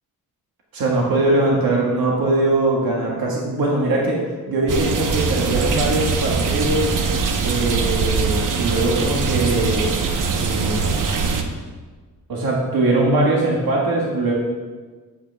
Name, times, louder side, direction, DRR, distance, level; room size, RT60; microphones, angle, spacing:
voice 1, 0.7-4.2 4.5-6.9 7.4-9.9 10.3-11.0 12.3-14.3, right 2 dB, 85° right, -3 dB, 1.7 m, -21 dB
sound 1, 4.7-11.4, right 5 dB, 65° right, 0.9 m, -22 dB
9.9 x 8.1 x 3.4 m, 1.4 s
wide cardioid pair, 150°, 35 cm